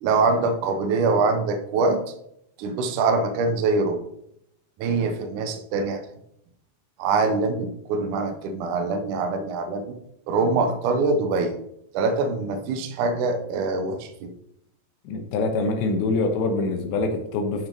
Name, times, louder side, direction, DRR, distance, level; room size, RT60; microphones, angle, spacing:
voice 1, 0.0-2.0 2.6-4.0 4.8-6.0 7.0-10.0 10.3-11.6 11.9-14.3, right 3 dB, 80° right, 7 dB, 1.8 m, -24 dB
voice 2, 15.0-17.7, left 3 dB, 85° left, 4 dB, 3.3 m, -25 dB
10.5 x 5.9 x 4.0 m, 0.76 s
omnidirectional pair, 5.0 m